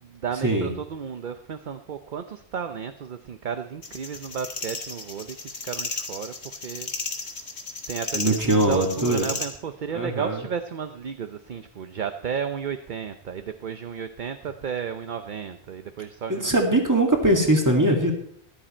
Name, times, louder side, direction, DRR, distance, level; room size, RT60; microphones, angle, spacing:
voice 1, 0.0-5.4 5.6-6.9 7.2-7.5 7.9-16.5, right 7 dB, 50° right, 9 dB, 0.8 m, -33 dB
sound 1, 3.8-9.5, left 3 dB, 90° left, 1.9 m, -34 dB
voice 2, 8.1-9.3 9.9-10.4 16.3-18.1, right 1 dB, 15° right, 2 dB, 2.0 m, -21 dB
14.0 x 11.5 x 4.3 m, 0.65 s
omnidirectional pair, 1.1 m